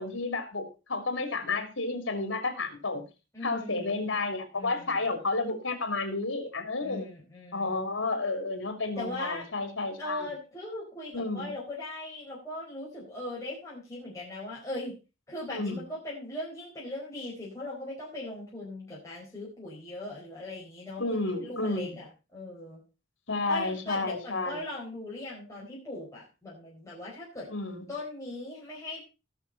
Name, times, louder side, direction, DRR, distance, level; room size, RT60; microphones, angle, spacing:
voice 1, 0.0-3.0 3.4-7.1 7.5-10.3 11.1-11.5 15.5-15.8 21.0-22.0 23.3-24.6 27.5-27.9, left 3 dB, 70° left, 6 dB, 3.2 m, -31 dB
voice 2, 3.3-4.0 4.5-5.1 6.8-7.8 9.0-9.4 10.0-14.9 15.3-22.8 23.5-27.5 27.9-29.0, left 1 dB, 15° left, -6 dB, 4.6 m, -39 dB
18.5 x 6.7 x 4.1 m, 0.30 s
head